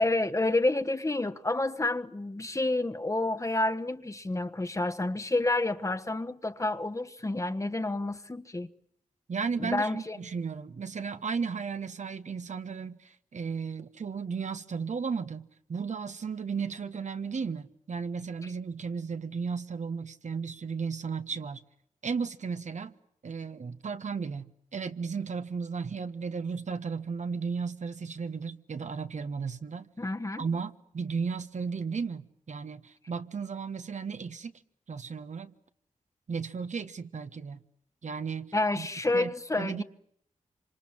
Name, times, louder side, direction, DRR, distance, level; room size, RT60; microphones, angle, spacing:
voice 1, 0.0-8.7 9.6-10.2 18.4-18.5 30.0-30.4 38.5-39.8, left 2 dB, 25° left, 1.3 m, -29 dB
voice 2, 9.3-21.6 22.0-22.9 23.2-29.9 30.4-34.5 34.9-35.5 36.3-37.6 38.0-38.9 39.1-39.3 39.6-39.8, right 5 dB, 65° right, 1.4 m, -34 dB
27.0 x 26.0 x 7.4 m
wide cardioid pair, 85°, 13 cm